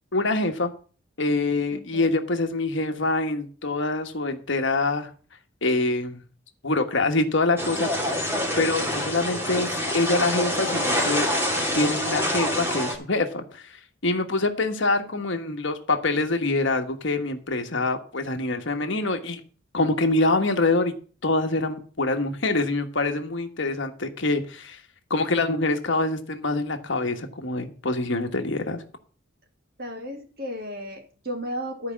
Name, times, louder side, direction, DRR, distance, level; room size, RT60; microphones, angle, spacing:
voice 1, 0.1-0.7 1.2-5.1 5.6-6.2 6.6-8.1 8.6-11.3 11.7-13.7 14.0-19.4 19.7-20.9 21.2-24.8 25.1-28.8, left 2 dB, 60° left, 6 dB, 1.4 m, -25 dB
voice 2, 1.7-2.1 29.8-31.9, equal, 50° right, 3 dB, 2.6 m, -34 dB
sound 1, 7.6-12.9, left 1 dB, 10° right, 2.7 m, -26 dB
13.0 x 5.0 x 7.3 m, 0.40 s
head